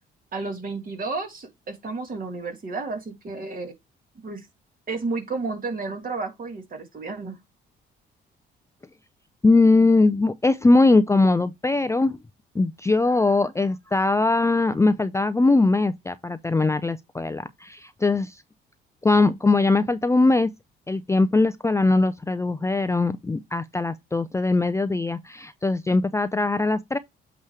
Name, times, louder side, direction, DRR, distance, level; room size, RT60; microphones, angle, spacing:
voice 1, 0.3-3.7 4.2-4.4 4.9-7.4, right 3 dB, 45° right, 2.5 m, -32 dB
voice 2, 9.4-12.2 12.5-18.4 19.0-20.5 20.9-27.0, left 3 dB, 15° left, 0.5 m, -21 dB
8.5 x 3.1 x 4.8 m
cardioid pair, 90°, 20 cm